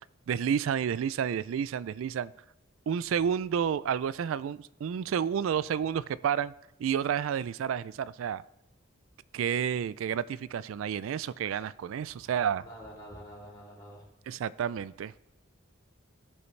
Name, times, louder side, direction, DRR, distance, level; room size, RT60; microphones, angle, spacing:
voice 1, 0.3-2.3 2.9-6.5 6.8-8.4 9.3-12.7 14.3-15.1, right 8 dB, 85° right, 18 dB, 0.3 m, -30 dB
voice 2, 12.6-14.1, equal, 15° left, -4 dB, 3.3 m, -47 dB
16.5 x 5.6 x 3.2 m, 0.94 s
head